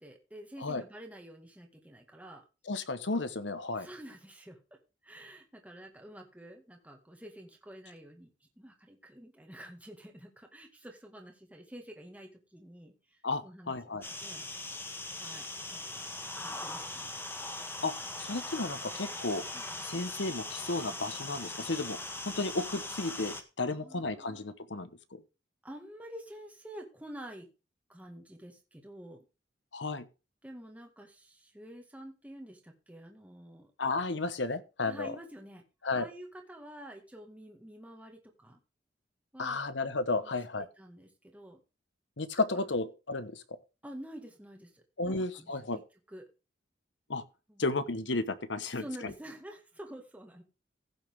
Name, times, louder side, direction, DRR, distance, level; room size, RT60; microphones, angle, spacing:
voice 1, 0.0-2.4 3.7-14.5 15.2-16.1 16.4-17.1 19.5-19.7 23.7-24.5 25.6-27.5 27.9-29.3 30.4-33.7 34.8-35.6 35.9-38.6 39.3-39.6 40.2-40.3 40.6-41.6 42.5-42.7 43.8-45.8 46.1-46.3 47.5-47.7 48.7-50.4, right 1 dB, 10° right, 1.9 m, -49 dB
voice 2, 2.7-3.9 13.2-14.0 17.8-17.9 18.2-19.4 19.8-22.0 22.3-25.2 29.7-30.1 33.8-35.1 35.8-36.1 39.4-40.6 42.2-43.4 45.0-45.8 47.1-47.2 47.6-48.8, left 3 dB, 70° left, 1.2 m, -33 dB
sound 1, 14.0-23.4, left 2 dB, 15° left, 1.5 m, -40 dB
15.5 x 7.1 x 3.6 m
head